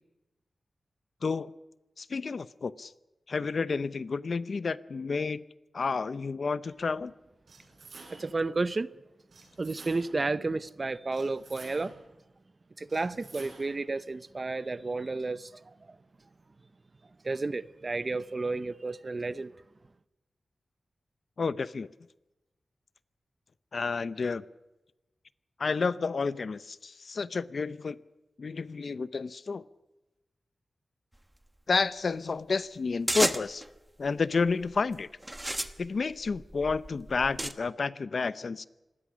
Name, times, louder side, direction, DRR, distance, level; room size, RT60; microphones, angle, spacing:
voice 1, 1.2-1.5 2.0-2.9 3.3-5.4 5.7-7.1 21.4-21.9 23.7-24.4 25.6-28.0 28.4-29.6 31.7-33.6 34.0-35.1 35.8-38.7, left 4 dB, 55° left, 0.7 m, -30 dB
sound 1, 7.5-8.4 9.3-10.3 11.1-12.1 12.9-13.9, right 3 dB, 70° right, 7.8 m, -51 dB
voice 2, 8.1-8.9 9.6-11.9 12.8-15.7 17.2-19.5, right 3 dB, 35° right, 0.7 m, -32 dB
sound 2, 33.1-33.7 34.5-34.8 35.2-37.5, right 1 dB, 10° right, 1.1 m, -32 dB
26.0 x 20.5 x 6.2 m
wide cardioid pair, 145°, 0 cm